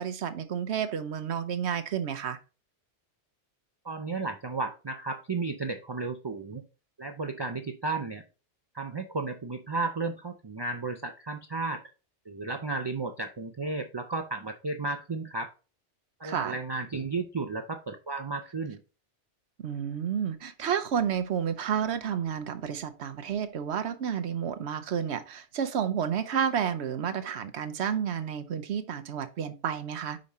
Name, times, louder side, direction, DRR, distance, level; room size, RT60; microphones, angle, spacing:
voice 1, 0.0-2.4 16.2-16.6 19.6-30.2, right 8 dB, 70° right, 1.0 m, -31 dB
voice 2, 3.8-6.7 7.0-8.2 8.7-11.8 12.3-15.5 16.2-18.8 27.1-27.3, right 3 dB, 40° right, 0.4 m, -33 dB
5.3 x 4.9 x 4.1 m
omnidirectional pair, 1.2 m